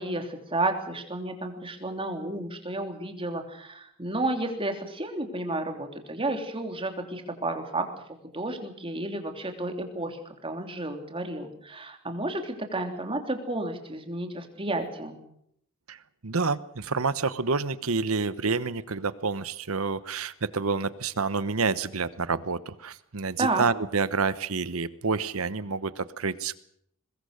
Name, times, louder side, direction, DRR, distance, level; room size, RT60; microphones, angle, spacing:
voice 1, 0.0-7.9 8.2-15.2 23.4-23.6, right 2 dB, 25° right, 4 dB, 3.1 m, -32 dB
voice 2, 15.9-26.6, right 4 dB, 75° right, 15 dB, 1.1 m, -28 dB
22.5 x 21.0 x 6.6 m, 0.71 s
head